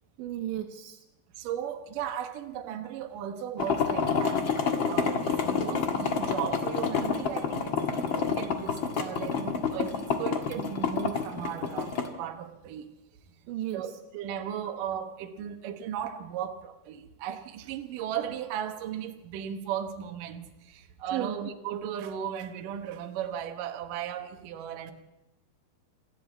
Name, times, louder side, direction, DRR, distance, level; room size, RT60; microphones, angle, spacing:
voice 1, 0.2-1.0 13.5-13.9 21.1-21.4, right 12 dB, 90° right, 3.3 m, -34 dB
voice 2, 1.4-4.4 4.9-12.9 13.7-24.9, right 9 dB, 65° right, 2.4 m, -36 dB
sound 1, 3.6-12.1, left 6 dB, 60° left, 1.3 m, -28 dB
26.5 x 14.0 x 8.3 m
omnidirectional pair, 5.0 m